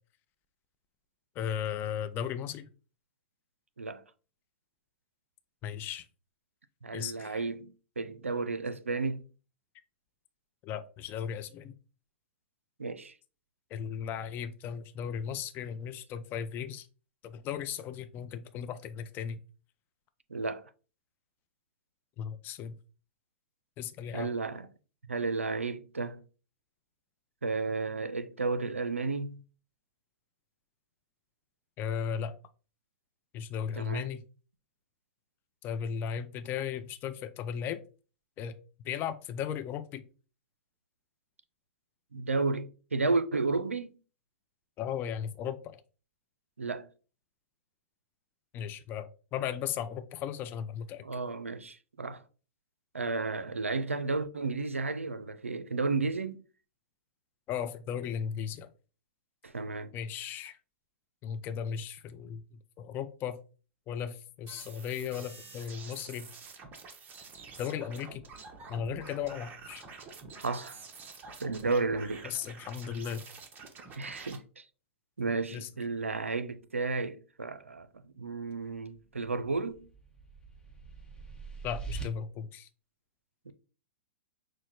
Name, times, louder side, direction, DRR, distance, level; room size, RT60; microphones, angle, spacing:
voice 1, 1.4-2.7 5.6-6.0 6.9-7.4 10.6-11.7 13.7-16.9 17.2-19.4 22.2-22.8 23.8-24.3 31.8-32.3 33.3-34.2 35.6-37.8 38.4-38.5 38.8-40.0 44.8-45.8 48.5-51.0 57.5-58.7 59.9-60.6 61.2-62.4 62.8-63.4 63.9-66.3 67.6-68.2 68.7-69.8 72.2-73.2 75.5-75.7 81.6-82.7, left 8 dB, 30° left, 0.4 m, -36 dB
voice 2, 6.8-9.2 12.8-13.1 20.3-20.7 24.1-24.7 25.1-26.2 27.4-29.4 33.7-34.1 42.1-44.0 46.6-46.9 51.0-52.2 52.9-56.4 59.4-59.9 70.4-70.8 71.4-72.3 74.0-74.6 75.2-79.8 83.5-83.6, right 3 dB, 90° right, 0.4 m, -33 dB
sound 1, 64.5-74.4, right 4 dB, 25° right, 0.8 m, -48 dB
sound 2, 79.7-82.0, right 5 dB, 10° left, 1.0 m, -43 dB
6.2 x 2.1 x 3.0 m
figure-of-eight pair, 105°, 7 cm